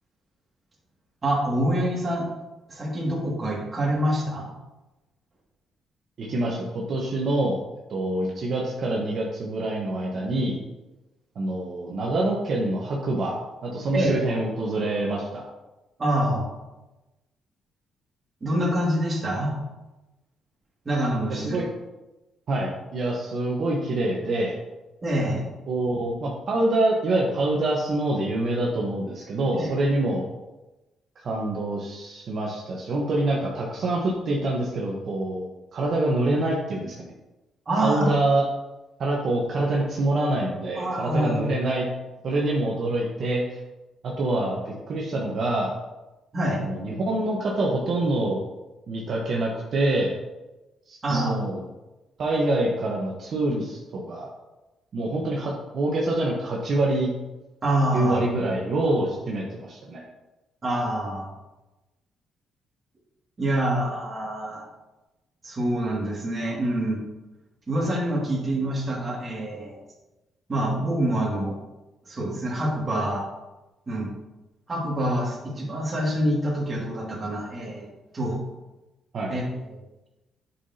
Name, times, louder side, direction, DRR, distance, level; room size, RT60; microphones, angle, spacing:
voice 1, 1.2-2.3 2.7-4.5 13.9-14.3 16.0-16.5 18.4-19.5 20.9-21.6 25.0-25.5 29.5-30.0 37.7-38.1 40.8-41.8 46.3-46.6 51.0-51.4 57.6-58.2 60.6-61.3 63.4-64.7 65.4-67.0 67.7-69.8 70.5-71.6 72.0-73.2 73.9-74.1 74.7-77.9 78.1-78.4 79.3-79.4 79.7-79.8, right 1 dB, 30° right, -2 dB, 2.2 m, -26 dB
voice 2, 6.2-7.6 7.9-10.6 11.3-15.4 21.3-21.6 22.5-24.6 25.7-30.2 31.2-37.1 37.8-38.4 39.0-41.9 42.2-43.6 44.0-45.7 46.6-48.4 48.9-50.1 50.9-51.6 52.2-54.3 54.9-57.1 57.9-60.0 79.1-79.3, right 2 dB, 55° right, -3 dB, 1.1 m, -26 dB
8.2 x 5.8 x 2.8 m, 1.0 s
cardioid pair, 90°, 0 cm